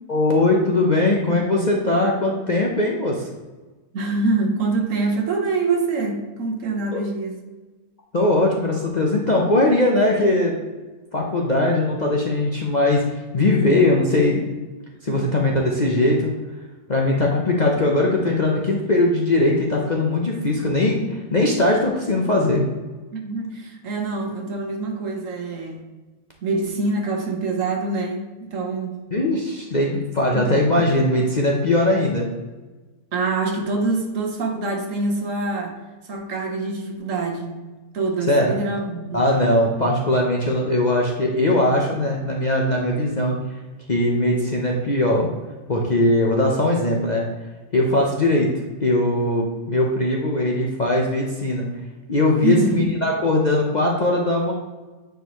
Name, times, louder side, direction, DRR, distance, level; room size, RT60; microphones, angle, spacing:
voice 1, 0.1-3.3 6.9-7.0 8.1-10.6 11.1-13.0 13.3-14.4 15.0-16.3 16.9-22.6 29.1-32.3 38.3-38.6 39.1-43.4 43.9-45.3 45.7-47.3 47.7-48.5 48.8-51.7 52.1-54.5, left 1 dB, 40° left, -1 dB, 0.7 m, -20 dB
voice 2, 3.9-7.4 15.1-15.3 23.1-25.8 26.4-29.0 30.3-30.6 33.1-35.8 36.0-37.5 37.9-39.2 52.4-52.9, right 3 dB, 60° right, 3 dB, 1.3 m, -25 dB
9.2 x 4.5 x 3.0 m, 1.2 s
omnidirectional pair, 1.6 m